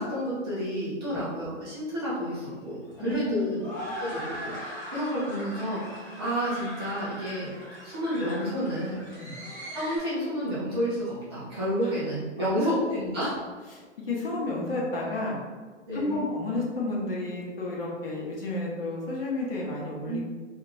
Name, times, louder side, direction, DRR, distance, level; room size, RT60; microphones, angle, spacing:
voice 1, 0.0-3.6 4.0-7.5 7.8-9.0 9.7-13.3 15.9-16.3 20.1-20.2, equal, 20° right, -10 dB, 0.6 m, -30 dB
sound 1, 2.0-10.0, equal, 15° left, 0.5 m, -40 dB
voice 2, 3.0-3.6 9.2-9.4 12.4-12.7 13.7-15.4 15.9-20.2, left 2 dB, 50° left, -3 dB, 0.8 m, -31 dB
2.8 x 2.4 x 3.0 m, 1.4 s
hypercardioid pair, 165°, 37 cm